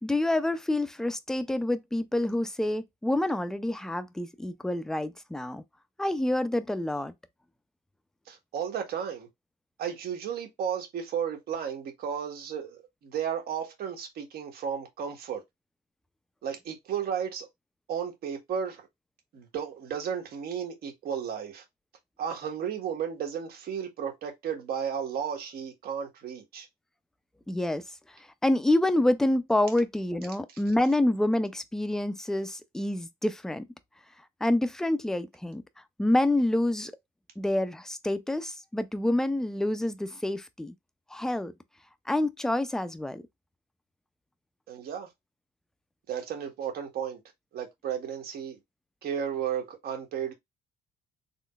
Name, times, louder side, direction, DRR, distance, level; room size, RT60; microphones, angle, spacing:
voice 1, 0.0-5.6 6.0-7.1 27.5-27.8 28.4-33.6 34.4-35.6 36.0-36.9 37.4-40.7 41.1-41.5 42.1-43.2, left 1 dB, 5° left, 0.4 m, -27 dB
voice 2, 8.3-9.3 9.8-15.4 16.4-17.5 17.9-18.9 19.3-21.6 22.2-26.7 44.7-45.1 46.1-47.2 47.5-48.6 49.0-50.3, right 8 dB, 65° right, 1.5 m, -33 dB
3.8 x 3.1 x 2.3 m
cardioid pair, 110°, 17 cm